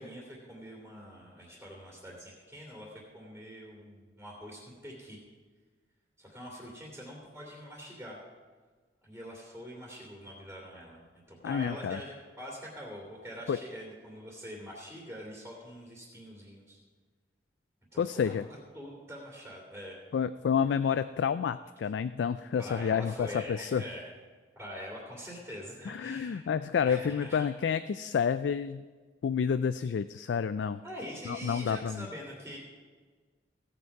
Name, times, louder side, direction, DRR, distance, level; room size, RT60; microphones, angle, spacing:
voice 1, 0.0-5.2 6.2-8.2 9.0-16.8 17.9-20.0 22.6-24.0 24.6-26.5 26.8-27.5 30.8-32.6, equal, 10° right, -4 dB, 2.6 m, -44 dB
voice 2, 11.4-12.0 13.5-13.6 18.0-18.4 20.1-23.8 25.9-28.8 29.2-30.8 31.3-32.1, left 7 dB, 75° left, 13 dB, 0.3 m, -29 dB
16.0 x 7.9 x 4.8 m, 1.4 s
head